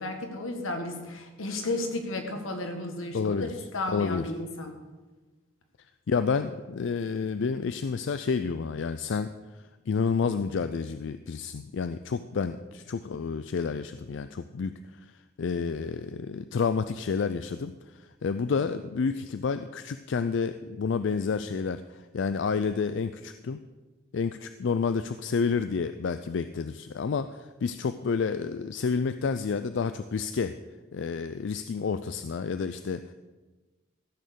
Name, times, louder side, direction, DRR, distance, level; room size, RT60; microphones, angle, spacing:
voice 1, 0.0-3.4 3.7-4.8, left 2 dB, 85° left, 4 dB, 1.8 m, -33 dB
voice 2, 3.1-3.5 3.9-4.3 6.1-9.3 9.9-14.7 15.4-23.6 24.1-30.5 30.9-33.1, left 5 dB, 60° left, 11 dB, 0.4 m, -29 dB
14.5 x 6.4 x 6.8 m, 1.2 s
head